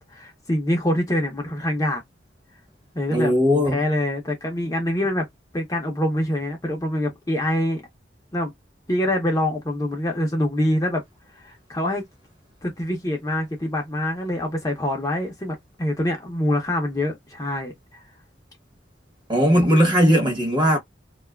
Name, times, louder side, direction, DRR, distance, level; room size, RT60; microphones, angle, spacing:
voice 1, 0.1-2.0 2.9-3.3 3.6-5.3 5.5-7.8 8.3-8.5 8.9-11.0 11.3-12.0 12.6-18.0, left 1 dB, 20° left, 0.6 m, -25 dB
voice 2, 3.1-3.8 19.3-20.8, equal, 25° right, 0.8 m, -18 dB
2.5 x 2.3 x 2.2 m
head